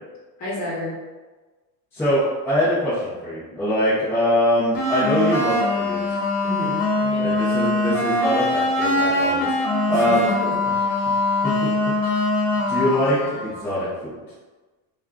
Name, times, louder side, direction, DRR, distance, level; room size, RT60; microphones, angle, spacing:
voice 1, 0.4-0.9 3.4-3.5 6.4-7.3 9.9-10.5, left 1 dB, 40° left, -6 dB, 1.1 m, -30 dB
voice 2, 1.9-6.2 7.2-9.5 9.9-10.2 11.4-11.7 12.7-14.1, equal, 5° left, -12 dB, 0.6 m, -23 dB
sound 1, 4.7-13.6, left 2 dB, 70° left, 0.9 m, -22 dB
2.5 x 2.3 x 3.4 m, 1.3 s
cardioid pair, 175°, 41 cm